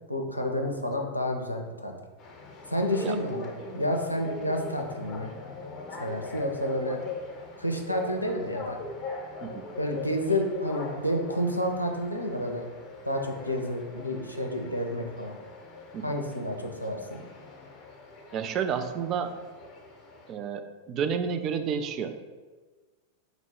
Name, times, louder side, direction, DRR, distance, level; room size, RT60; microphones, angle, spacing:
voice 1, 0.1-1.9 2.7-5.3 5.9-7.0 7.6-8.8 9.8-12.6 13.0-15.4 16.0-17.2, equal, 90° left, 2 dB, 0.4 m, -30 dB
sound 1, 2.2-20.3, left 3 dB, 35° left, 0.7 m, -42 dB
voice 2, 18.3-19.3 20.3-22.1, right 7 dB, 35° right, 8 dB, 0.3 m, -30 dB
3.9 x 2.2 x 4.5 m, 1.3 s
figure-of-eight pair, 90°, 0 cm